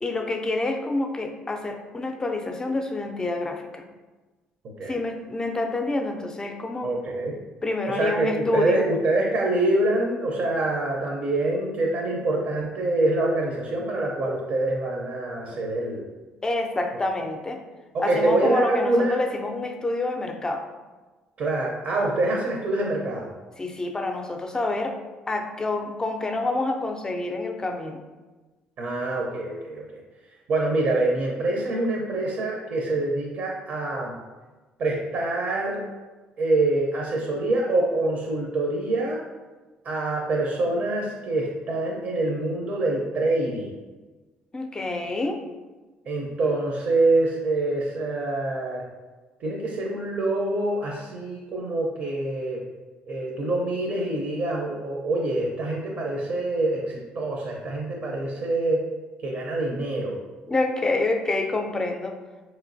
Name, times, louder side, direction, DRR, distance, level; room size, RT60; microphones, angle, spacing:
voice 1, 0.0-3.9 4.8-6.9 7.6-8.9 16.4-17.6 18.0-20.6 23.6-25.0 25.3-28.0 44.5-45.4 60.5-62.2, left 2 dB, 20° left, 4 dB, 0.4 m, -27 dB
voice 2, 6.8-7.3 7.9-16.1 17.9-19.1 21.4-23.3 28.8-29.8 30.5-34.1 34.8-35.8 36.4-39.2 39.8-43.8 46.1-48.8 49.4-52.6 53.1-58.8 59.2-60.2, right 2 dB, 55° right, 0 dB, 0.6 m, -25 dB
4.1 x 3.0 x 2.6 m, 1.3 s
cardioid pair, 95°, 3 cm